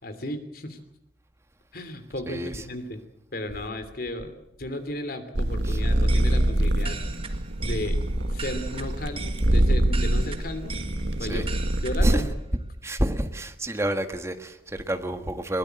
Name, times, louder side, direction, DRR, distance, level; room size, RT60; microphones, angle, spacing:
voice 1, 0.0-0.8 1.7-3.0 3.3-4.3 4.6-7.0 7.6-8.0 8.3-10.8 11.2-11.5 11.8-12.3, left 1 dB, 60° left, 10 dB, 2.9 m, -34 dB
voice 2, 2.3-2.6 5.6-5.8 11.2-11.5 12.0-12.2 12.8-15.6, right 1 dB, 15° right, 7 dB, 1.5 m, -29 dB
sound 1, 5.3-12.1, right 1 dB, 80° right, 1.5 m, -24 dB
sound 2, 5.8-12.3, right 3 dB, 35° right, 1.9 m, -39 dB
22.0 x 19.0 x 7.7 m, 0.84 s
head